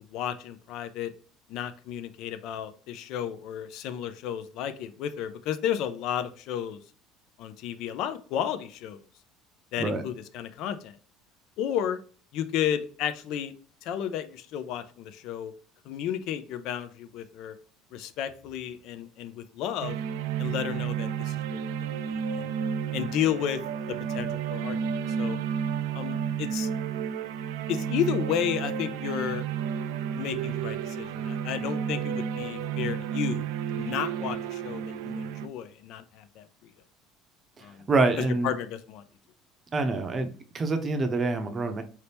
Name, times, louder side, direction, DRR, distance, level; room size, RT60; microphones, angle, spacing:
voice 1, 0.1-1.1 1.5-6.8 7.4-9.0 9.7-11.0 11.6-12.0 12.3-13.5 13.8-15.5 15.8-17.6 17.9-20.0 20.4-21.6 22.1-22.5 22.9-23.6 23.9-25.4 25.9-26.7 27.7-29.5 30.1-33.5 33.7-36.7 37.6-37.9 38.2-39.0, left 9 dB, 65° left, 11 dB, 0.5 m, -32 dB
sound 1, 19.8-35.5, right 8 dB, 90° right, 0.3 m, -31 dB
voice 2, 37.9-38.5 39.7-41.8, right 3 dB, 30° right, 7 dB, 0.7 m, -26 dB
4.4 x 2.8 x 3.4 m, 0.41 s
cardioid pair, 120°, 0 cm